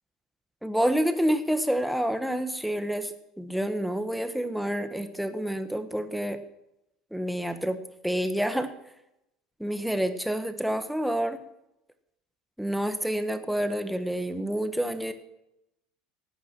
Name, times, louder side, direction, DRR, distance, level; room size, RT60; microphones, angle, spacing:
voice 1, 0.6-6.4 7.1-7.8 8.0-8.7 9.6-11.4 12.6-15.1, equal, ahead, 9 dB, 1.3 m, -28 dB
17.0 x 9.6 x 6.1 m, 0.84 s
cardioid pair, 145°, 0 cm